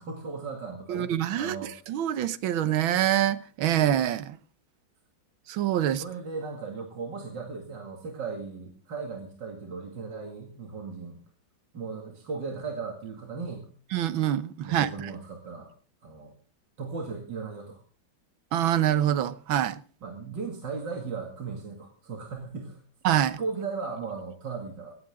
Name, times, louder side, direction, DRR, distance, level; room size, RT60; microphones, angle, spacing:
voice 1, 0.0-1.7 6.0-11.2 11.7-13.7 14.6-15.7 16.0-16.3 16.8-17.8 20.0-22.8 23.4-25.0, right 4 dB, 60° right, 2.9 m, -37 dB
voice 2, 0.9-1.6 1.9-4.4 5.5-6.0 13.9-15.1 18.5-19.8 23.0-23.4, right 11 dB, 80° right, 1.7 m, -25 dB
17.5 x 15.0 x 3.6 m
omnidirectional pair, 2.2 m